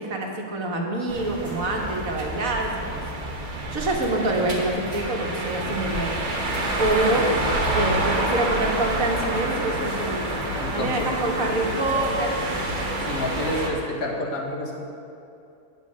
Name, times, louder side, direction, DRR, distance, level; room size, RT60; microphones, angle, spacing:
voice 1, 0.0-3.0 3.7-6.1 6.4-7.3 7.7-10.2 10.7-12.7, right 2 dB, 70° right, 0 dB, 1.7 m, -26 dB
sound 1, 1.1-13.7, right 1 dB, 90° right, 1.8 m, -28 dB
sound 2, 5.5-13.6, left 2 dB, 60° left, 1.2 m, -38 dB
voice 2, 10.5-11.1 13.0-14.8, left 1 dB, 75° left, -1 dB, 1.8 m, -29 dB
9.4 x 6.7 x 6.2 m, 2.6 s
omnidirectional pair, 1.5 m